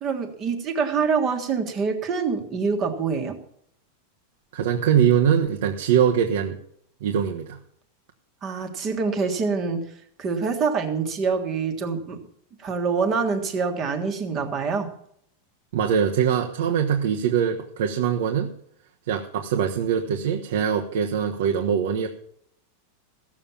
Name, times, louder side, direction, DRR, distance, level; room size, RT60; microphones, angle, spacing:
voice 1, 0.0-3.3 8.4-9.9 10.2-12.2 12.6-14.9, right 5 dB, 20° right, 5 dB, 1.6 m, -25 dB
voice 2, 4.5-6.6 7.0-7.6 15.7-18.5 19.1-22.1, right 8 dB, 60° right, 1 dB, 1.2 m, -22 dB
16.0 x 7.3 x 7.2 m, 0.68 s
supercardioid pair, 180°, 0 cm